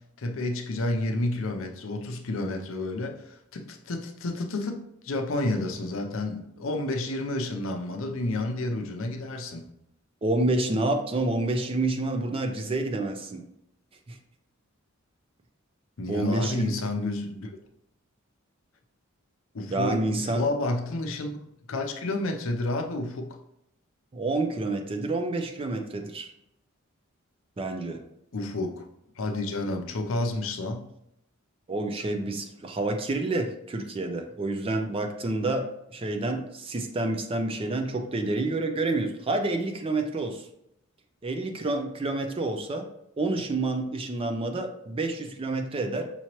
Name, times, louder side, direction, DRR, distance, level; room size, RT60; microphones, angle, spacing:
voice 1, 0.2-9.6 16.0-17.5 19.5-21.4 21.7-23.4 28.3-28.8 29.2-30.8, left 2 dB, 65° left, 4 dB, 0.6 m, -30 dB
voice 2, 10.2-13.4 14.1-14.2 16.1-16.8 19.7-20.5 24.1-26.3 27.6-28.0 31.7-40.5 41.2-42.9 43.2-46.1, right 2 dB, 25° right, 6 dB, 0.4 m, -28 dB
5.6 x 3.0 x 2.9 m, 0.79 s
head